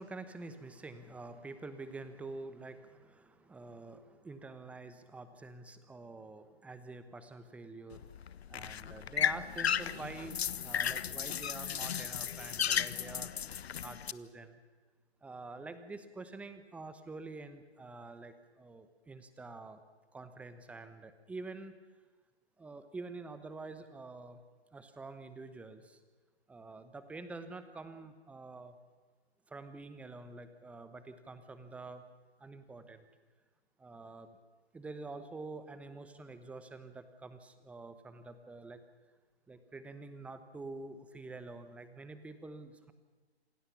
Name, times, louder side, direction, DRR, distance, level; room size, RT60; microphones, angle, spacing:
voice 1, 0.0-8.1 8.5-13.3 13.8-14.6 15.2-19.8 20.1-21.7 22.6-24.4 24.7-26.0 26.5-28.8 29.5-32.0 32.4-33.1 33.8-34.4 34.7-38.8 39.5-42.9, right 3 dB, 5° right, 11 dB, 0.9 m, -47 dB
sound 1, 7.9-14.1, left 8 dB, 70° left, 0.8 m, -35 dB
27.0 x 17.0 x 7.0 m, 1.4 s
hypercardioid pair, 140°, 33 cm